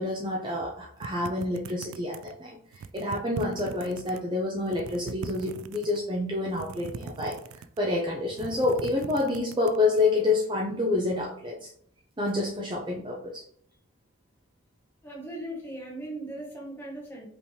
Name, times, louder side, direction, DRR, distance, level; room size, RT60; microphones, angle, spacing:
voice 1, 0.0-7.4 7.8-11.7 12.2-13.4, left 2 dB, 20° right, -2 dB, 0.5 m, -28 dB
sound 1, 1.0-2.4 2.7-4.2 4.6-6.0 6.5-7.9 8.2-10.0, right 5 dB, 80° right, 0.3 m, -40 dB
voice 2, 15.0-17.3, right 1 dB, 10° left, -3 dB, 1.2 m, -38 dB
5.3 x 2.9 x 3.3 m, 0.65 s
head